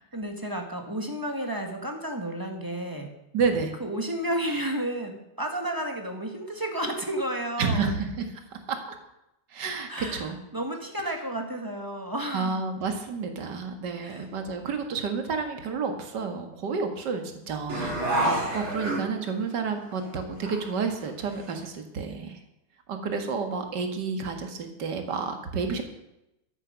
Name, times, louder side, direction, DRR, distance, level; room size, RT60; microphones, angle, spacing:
voice 1, 0.1-3.1 3.8-7.9 9.9-12.6 14.0-14.2, right 1 dB, 10° right, 3 dB, 1.8 m, -32 dB
voice 2, 3.3-3.7 7.6-8.8 9.5-10.4 11.0-11.1 12.3-22.4 22.9-25.8, right 5 dB, 55° right, 5 dB, 2.3 m, -30 dB
sound 1, 17.7-19.5 20.0-20.1 20.4-21.6, right 1 dB, 70° right, 4.6 m, -29 dB
13.5 x 12.0 x 5.3 m, 0.87 s
omnidirectional pair, 2.3 m